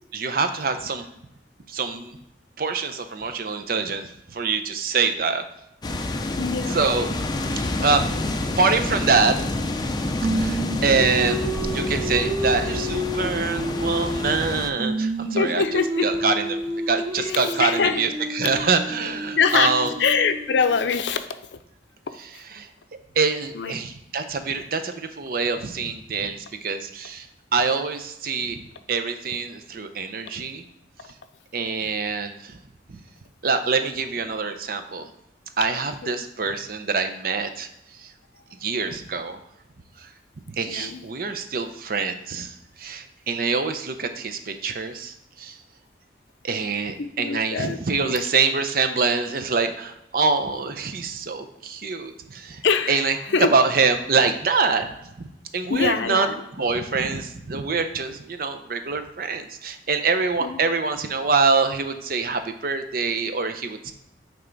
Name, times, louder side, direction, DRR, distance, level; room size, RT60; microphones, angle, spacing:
voice 1, 0.1-1.0 1.7-2.2 2.6-5.4 6.7-7.1 7.5-8.0 8.3-9.4 10.3-15.6 16.0-19.9 22.2-22.7 23.2-27.3 27.5-30.6 31.5-32.6 33.4-35.1 35.6-38.1 38.6-39.4 40.0-40.1 40.5-45.6 46.4-53.2 53.5-54.9 55.5-56.3 56.5-63.9, right 4 dB, 55° right, 8 dB, 0.6 m, -25 dB
sound 1, 5.8-14.7, left 2 dB, 25° left, 0.5 m, -28 dB
voice 2, 6.4-6.8 15.3-16.1 17.2-18.1 19.4-21.3 23.5-23.7 36.0-36.2 40.7-41.0 47.0-48.1 52.6-53.5 55.7-56.3 60.4-60.6, left 5 dB, 75° left, 10 dB, 0.5 m, -24 dB
Singing, 10.2-14.5 14.8-20.8, right 1 dB, 20° right, 1.3 m, -29 dB
8.9 x 3.4 x 3.9 m, 0.83 s
head